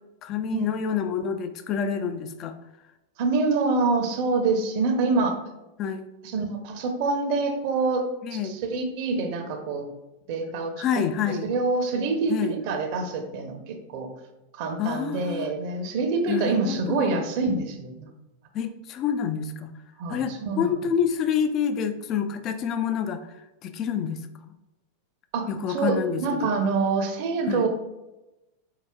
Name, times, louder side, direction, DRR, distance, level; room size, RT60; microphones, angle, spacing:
voice 1, 0.2-2.5 5.8-6.1 8.2-8.6 10.8-11.5 12.3-12.6 14.8-15.5 16.3-17.2 18.5-19.7 20.1-23.2 23.6-24.5 25.5-26.5 27.5-27.7, left 7 dB, 35° left, 9 dB, 0.3 m, -28 dB
voice 2, 3.2-5.4 6.3-9.8 10.3-10.8 11.3-14.1 14.5-18.1 20.0-20.8 25.3-27.7, right 3 dB, 45° right, 5 dB, 0.7 m, -26 dB
4.8 x 4.2 x 2.3 m, 0.96 s
figure-of-eight pair, 90°, 0 cm